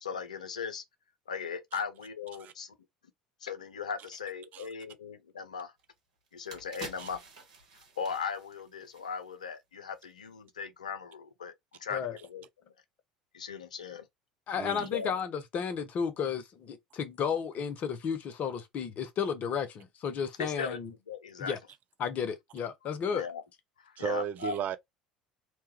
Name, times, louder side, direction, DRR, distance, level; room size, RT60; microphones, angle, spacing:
voice 1, 0.0-0.8 1.3-2.7 3.4-5.7 6.3-7.2 8.0-11.5 11.8-12.0 12.3-12.4 13.3-14.1 14.9-15.2 20.4-20.8 21.1-21.6 23.1-23.4 23.8-24.5, left 6 dB, 80° left, 0.4 m, -38 dB
sound 1, 5.8-5.9 6.3-9.5 9.9-10.0, right 4 dB, 75° right, 0.9 m, -49 dB
voice 2, 14.5-20.9 21.4-21.6 22.0-23.2, left 7 dB, 45° left, 0.7 m, -33 dB
voice 3, 24.0-24.8, right 9 dB, 45° right, 0.4 m, -34 dB
3.0 x 2.2 x 3.0 m
figure-of-eight pair, 70°, 4 cm